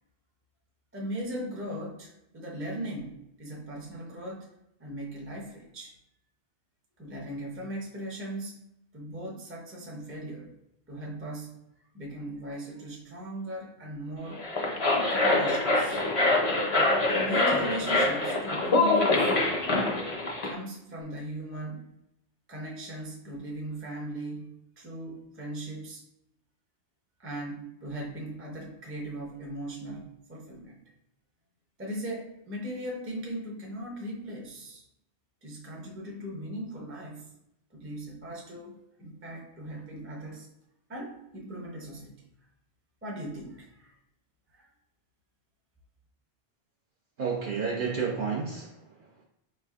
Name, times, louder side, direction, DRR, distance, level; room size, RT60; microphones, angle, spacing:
voice 1, 0.9-4.5 4.8-5.9 7.0-8.6 8.9-10.5 10.9-11.6 11.9-14.4 15.1-16.0 17.1-19.3 20.4-21.9 22.5-26.0 27.2-30.8 31.8-34.8 35.4-37.3 37.7-40.5 40.9-42.2 43.0-43.9 44.5-44.7, right 1 dB, 15° right, -2 dB, 0.6 m, -38 dB
sound 1, 14.3-20.5, left 2 dB, 35° left, 0.6 m, -25 dB
voice 2, 47.2-49.2, right 5 dB, 60° right, -2 dB, 0.7 m, -31 dB
4.9 x 3.2 x 2.4 m, 0.83 s
omnidirectional pair, 1.1 m